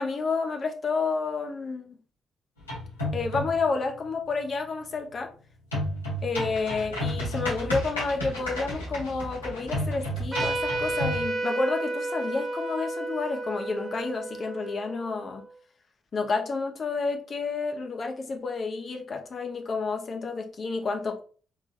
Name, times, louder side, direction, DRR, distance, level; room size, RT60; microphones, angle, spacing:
voice 1, 0.0-2.0 3.1-5.3 6.2-15.4 16.1-21.2, left 4 dB, 45° left, 0.9 m, -30 dB
sound 1, 2.6-3.7 5.7-11.3, left 1 dB, 90° left, 1.6 m, -32 dB
Trumpet, 10.3-15.4, right 2 dB, 35° right, 1.0 m, -32 dB
4.3 x 3.5 x 2.6 m
figure-of-eight pair, 40°, 0 cm